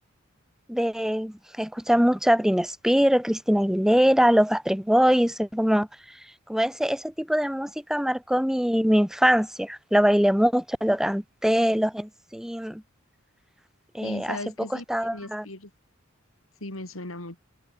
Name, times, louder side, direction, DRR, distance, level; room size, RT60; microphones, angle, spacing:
voice 1, 0.7-5.9 6.5-12.8 13.9-14.4 14.9-15.5, equal, 5° right, 1.9 m, -23 dB
voice 2, 14.0-14.9 15.1-15.7 16.6-17.4, left 2 dB, 75° left, 5.3 m, -37 dB
head